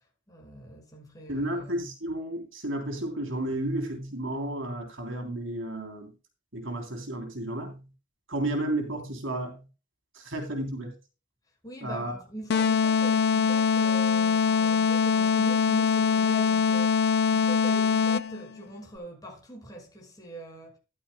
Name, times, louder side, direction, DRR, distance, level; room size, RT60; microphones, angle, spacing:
voice 1, 0.3-1.8 11.6-20.8, right 1 dB, 20° left, 5.8 m, -42 dB
voice 2, 1.3-6.1 6.5-7.9 8.3-9.7 10.1-11.0 11.8-12.1, right 1 dB, 70° right, 3.4 m, -32 dB
sound 1, 12.5-18.5, left 6 dB, 55° left, 0.5 m, -23 dB
14.5 x 11.5 x 2.2 m
head